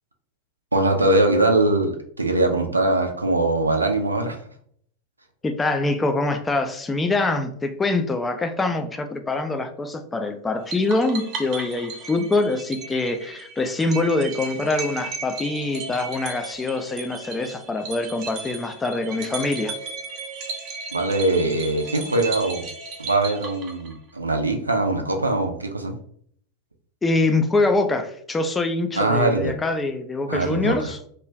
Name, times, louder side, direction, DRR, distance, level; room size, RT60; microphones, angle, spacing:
voice 1, 0.7-4.4 20.9-22.7 23.0-25.9 29.0-29.5 30.3-30.9, right 2 dB, 80° right, 0.4 m, -22 dB
voice 2, 5.4-19.8 27.0-31.0, left 2 dB, 15° left, 0.3 m, -24 dB
sound 1, 10.7-24.1, right 4 dB, 35° right, 0.6 m, -35 dB
2.4 x 2.2 x 3.1 m
figure-of-eight pair, 90°, 0 cm